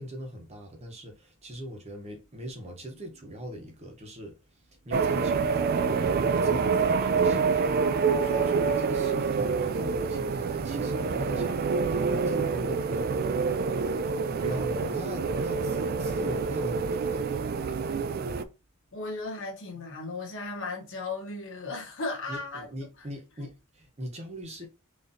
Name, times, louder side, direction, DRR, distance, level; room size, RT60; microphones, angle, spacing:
voice 1, 0.0-5.9 6.3-7.8 8.2-13.1 13.5-17.6 22.3-24.7, right 1 dB, 30° right, 0.9 m, -40 dB
sound 1, 4.9-18.4, right 5 dB, 45° right, 0.4 m, -27 dB
voice 2, 18.9-22.7, left 3 dB, 60° left, 1.2 m, -36 dB
3.8 x 3.1 x 2.7 m
head